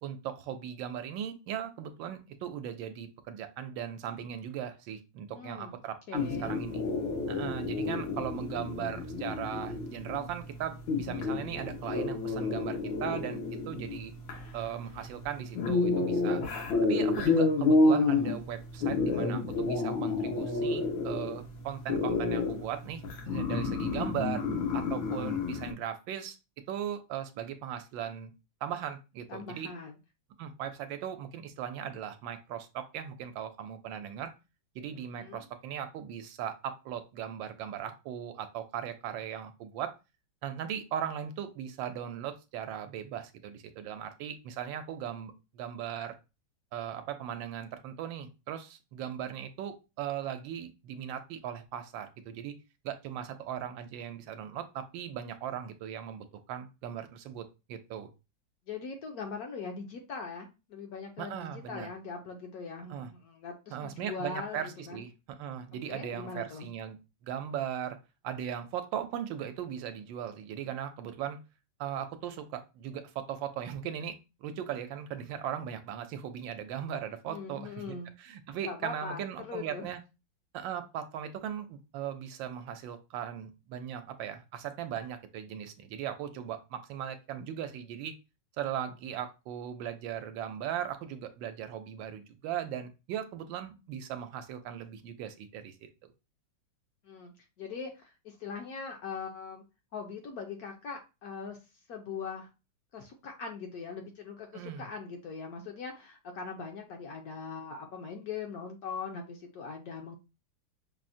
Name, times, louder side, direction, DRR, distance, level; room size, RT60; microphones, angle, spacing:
voice 1, 0.0-6.8 7.3-13.4 13.7-14.1 14.5-16.4 16.9-24.4 24.7-26.4 26.7-28.3 28.6-29.7 30.4-34.3 34.7-39.9 40.4-46.2 46.7-52.6 52.8-58.1 61.2-61.9 62.9-63.1 63.7-65.1 65.4-67.0 67.2-68.0 68.2-71.4 71.8-80.0 80.5-88.1 88.6-95.9 104.5-104.9, right 9 dB, 80° right, 8 dB, 1.3 m, -38 dB
voice 2, 5.3-5.8 6.1-6.6 29.3-30.0 35.1-35.4 58.7-65.0 65.9-66.7 77.3-78.1 78.6-79.9 97.0-99.6 99.9-101.6 101.9-102.5 102.9-110.2, left 5 dB, 70° left, 3 dB, 0.9 m, -41 dB
sound 1, 6.1-25.7, left 3 dB, 85° left, 1.6 m, -30 dB
5.8 x 2.1 x 2.5 m, 0.28 s
omnidirectional pair, 2.1 m